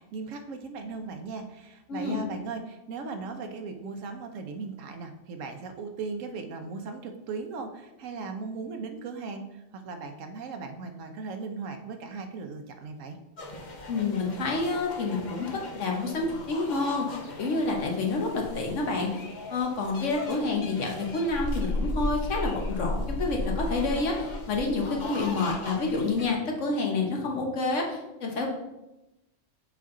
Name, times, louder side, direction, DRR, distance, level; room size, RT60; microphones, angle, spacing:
voice 1, 0.0-13.2, right 4 dB, 85° right, 6 dB, 1.1 m, -38 dB
voice 2, 1.9-2.2 13.9-19.2 19.5-28.5, left 3 dB, 75° left, 1 dB, 1.3 m, -28 dB
sound 1, 13.4-26.3, left 1 dB, 40° left, 0.8 m, -36 dB
6.9 x 4.3 x 3.7 m, 0.96 s
omnidirectional pair, 1.3 m